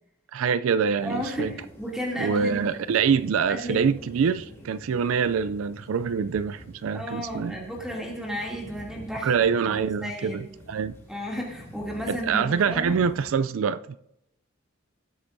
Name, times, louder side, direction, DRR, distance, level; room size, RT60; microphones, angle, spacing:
voice 1, 0.3-1.5 2.2-7.6 9.2-10.4 10.7-10.9 12.1-14.0, right 6 dB, 90° right, 0.4 m, -25 dB
sound 1, 1.0-13.3, equal, 15° left, 3.2 m, -47 dB
voice 2, 1.0-2.6 3.5-3.9 6.9-9.3 9.7-10.5 11.1-13.0, equal, 5° right, 2.6 m, -33 dB
18.5 x 8.1 x 2.6 m
head